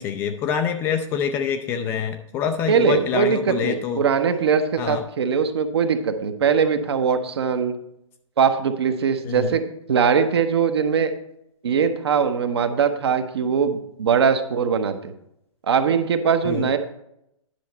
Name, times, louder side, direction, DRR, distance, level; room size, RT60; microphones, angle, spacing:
voice 1, 0.0-4.0 4.8-5.0 9.3-9.5 16.4-16.7, left 7 dB, 15° left, 7 dB, 0.4 m, -26 dB
voice 2, 2.7-7.7 8.4-9.6 9.9-11.1 11.6-15.1 15.7-16.8, right 6 dB, 55° right, 8 dB, 0.9 m, -21 dB
10.5 x 6.4 x 4.1 m, 0.78 s
figure-of-eight pair, 125°, 17 cm